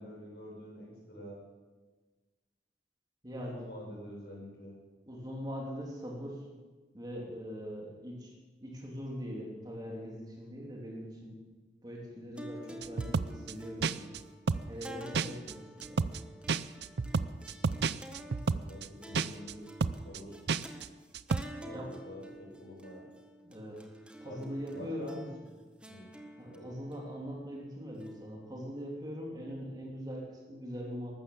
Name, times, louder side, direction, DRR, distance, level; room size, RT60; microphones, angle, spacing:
voice 1, 0.0-1.4 3.5-4.7 18.4-19.7 20.0-20.4 21.6-23.0 24.2-24.4 24.7-25.3 25.9-26.1 26.5-26.7, left 1 dB, 65° left, -2 dB, 6.3 m, -47 dB
voice 2, 3.2-3.7 5.1-6.4 6.9-8.3 8.6-11.4 11.8-14.1 14.7-16.0 21.6-21.9 23.4-23.8 24.2-25.2 26.4-31.1, equal, 25° right, -1 dB, 3.1 m, -41 dB
sound 1, 12.4-28.8, right 1 dB, 5° right, 1.3 m, -50 dB
sound 2, 12.8-13.5 13.8-14.2 14.5-14.9 15.1-15.5 15.8-16.2 16.5-18.9 19.1-19.5 19.8-20.2 20.5-20.9 21.1-21.4, right 4 dB, 70° right, 0.5 m, -31 dB
13.5 x 12.5 x 7.9 m, 1.3 s
head